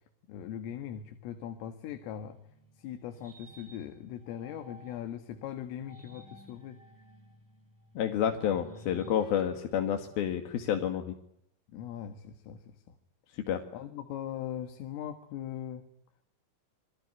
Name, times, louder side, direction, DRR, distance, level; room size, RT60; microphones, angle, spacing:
voice 1, 0.3-2.4 2.8-6.8 11.7-13.0 13.7-15.8, left 10 dB, 85° left, 7 dB, 4.4 m, -40 dB
sound 1, 2.0-5.2 5.7-10.9, right 2 dB, 5° left, 3.2 m, -52 dB
voice 2, 7.9-11.1 13.3-13.6, left 9 dB, 60° left, 5 dB, 3.1 m, -29 dB
27.0 x 23.0 x 9.4 m, 0.75 s
omnidirectional pair, 5.7 m